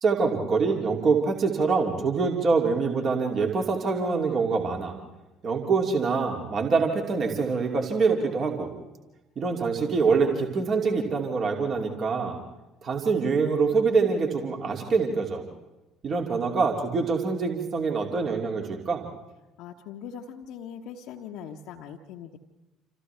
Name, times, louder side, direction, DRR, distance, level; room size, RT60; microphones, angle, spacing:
voice 1, 0.0-5.0 5.4-8.7 9.4-12.4 12.8-15.4 16.0-19.0, right 4 dB, 40° right, 2 dB, 2.8 m, -25 dB
voice 2, 19.6-22.4, left 8 dB, 55° left, -1 dB, 1.2 m, -41 dB
28.5 x 27.5 x 3.4 m, 1.0 s
figure-of-eight pair, 55°, 0 cm